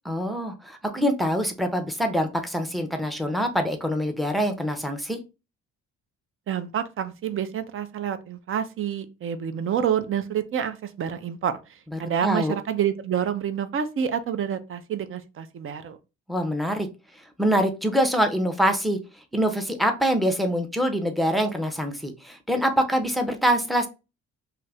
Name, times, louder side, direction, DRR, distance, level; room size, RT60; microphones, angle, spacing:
voice 1, 0.1-5.2 11.9-12.6 16.3-16.9 17.4-19.0 19.3-23.9, equal, ahead, 0.5 m, -24 dB
voice 2, 6.5-11.6 12.0-16.0, right 8 dB, 45° right, 0.5 m, -28 dB
2.7 x 2.4 x 3.2 m
cardioid pair, 90°, 30 cm